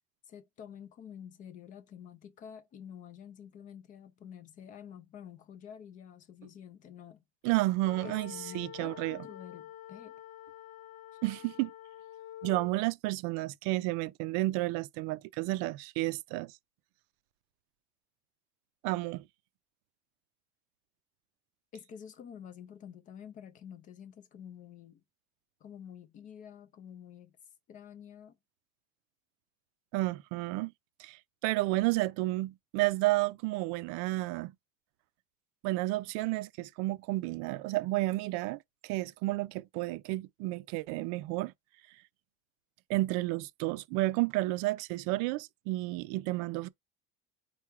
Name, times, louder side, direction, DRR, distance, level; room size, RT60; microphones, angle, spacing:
voice 1, 0.3-7.2 8.0-10.2 11.1-11.2 21.7-25.0 25.6-27.4 27.7-28.4, left 8 dB, 25° left, 0.4 m, -49 dB
voice 2, 7.4-9.2 11.2-11.7 12.4-16.5 18.8-19.2 29.9-30.7 31.0-34.5 35.6-41.5 42.9-46.7, right 19 dB, 55° right, 0.5 m, -31 dB
sound 1, 7.8-12.8, left 12 dB, 80° left, 0.6 m, -48 dB
4.7 x 2.2 x 4.4 m
cardioid pair, 170°, 34 cm